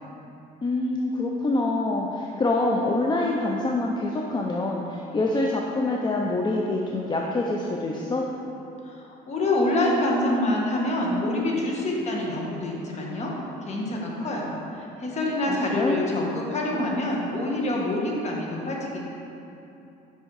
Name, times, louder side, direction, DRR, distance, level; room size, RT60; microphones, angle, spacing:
voice 1, 0.6-8.2 15.5-16.0, left 2 dB, 25° left, -1 dB, 0.5 m, -26 dB
voice 2, 8.9-13.3 13.7-14.5 14.8-19.0, left 1 dB, 40° left, -2 dB, 1.4 m, -26 dB
6.4 x 5.5 x 4.7 m, 2.9 s
cardioid pair, 110°, 17 cm